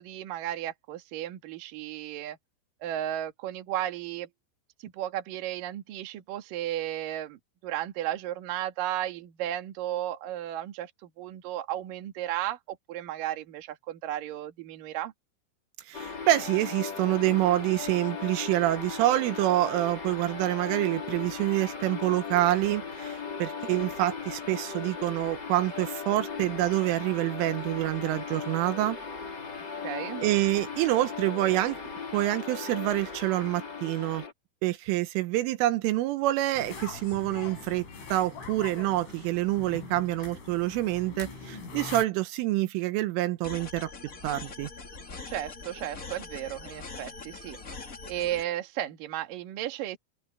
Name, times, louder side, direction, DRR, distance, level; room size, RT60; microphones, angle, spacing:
voice 1, 0.0-2.4 2.8-4.3 4.8-15.1 29.8-30.2 45.3-47.6 48.1-50.0, right 12 dB, 55° right, 2.9 m, -34 dB
sound 1, 15.9-34.3, left 5 dB, 25° left, 2.7 m, -37 dB
voice 2, 15.9-29.0 30.2-31.8 32.1-34.2 34.6-37.8 38.1-43.9 44.2-44.7, right 16 dB, 80° right, 3.5 m, -27 dB
sound 2, 36.5-42.0, left 4 dB, 75° left, 9.8 m, -42 dB
sound 3, 43.4-48.4, left 4 dB, 50° left, 0.9 m, -42 dB
omnidirectional pair, 5.7 m